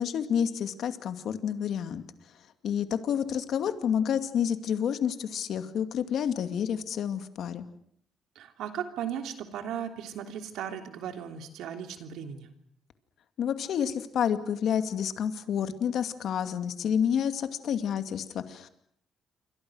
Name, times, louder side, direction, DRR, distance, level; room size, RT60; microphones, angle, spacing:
voice 1, 0.0-2.0 2.6-7.7 13.4-18.7, left 8 dB, 70° left, 9 dB, 2.4 m, -29 dB
voice 2, 8.3-12.5, right 9 dB, 85° right, 6 dB, 3.1 m, -36 dB
28.0 x 25.0 x 6.4 m, 0.66 s
cardioid pair, 90°, 0 cm